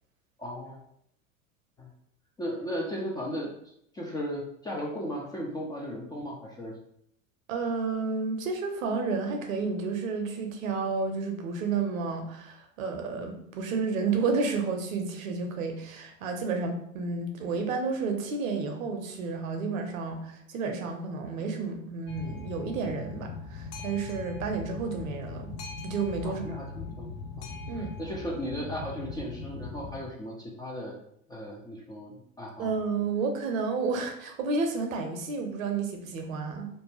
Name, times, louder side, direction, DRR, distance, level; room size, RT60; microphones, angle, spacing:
voice 1, 0.4-0.8 1.8-1.9 2.4-3.5 3.9-6.7 26.2-27.1 27.4-27.5 28.0-31.0 31.3-32.7, equal, 10° left, -3 dB, 0.3 m, -36 dB
voice 2, 7.5-25.5 25.8-26.5 27.7-27.9 32.6-36.7, right 4 dB, 75° right, 4 dB, 0.7 m, -31 dB
Boat Water vehicle, 22.1-30.0, left 4 dB, 45° left, 0.6 m, -40 dB
2.5 x 2.1 x 3.2 m, 0.71 s
hypercardioid pair, 85°, 41 cm